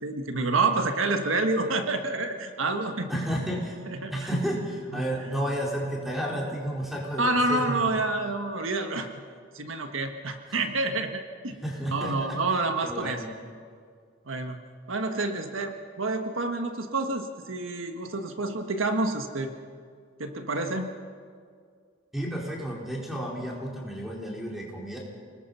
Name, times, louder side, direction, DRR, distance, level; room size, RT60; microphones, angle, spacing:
voice 1, 0.0-3.1 3.9-4.1 4.9-5.0 7.2-9.1 9.5-11.6 11.9-13.2 14.3-14.6 14.9-19.5 20.2-20.9, right 2 dB, 80° right, 6 dB, 1.5 m, -28 dB
voice 2, 3.1-3.7 4.1-7.9 10.5-10.6 11.6-12.4 12.8-13.3 22.1-25.0, equal, ahead, -3 dB, 4.5 m, -31 dB
29.0 x 19.5 x 5.7 m, 2.1 s
head